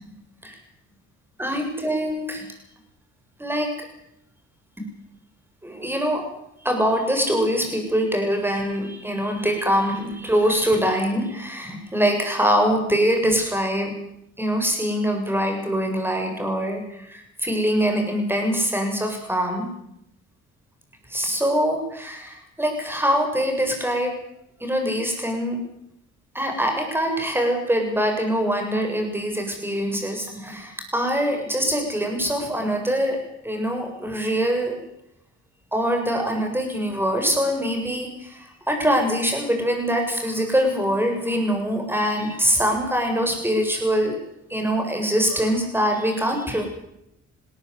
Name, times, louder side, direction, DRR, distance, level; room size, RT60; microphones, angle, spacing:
voice 1, 1.4-2.5 3.4-3.7 4.8-4.9 5.6-6.3 6.6-13.9 14.4-19.7 21.1-24.1 24.6-25.6 26.3-33.2 33.4-34.7 35.7-44.2 44.5-46.7, equal, 5° right, 3 dB, 7.7 m, -23 dB
20.5 x 17.5 x 8.4 m, 0.81 s
cardioid pair, 90°, 30 cm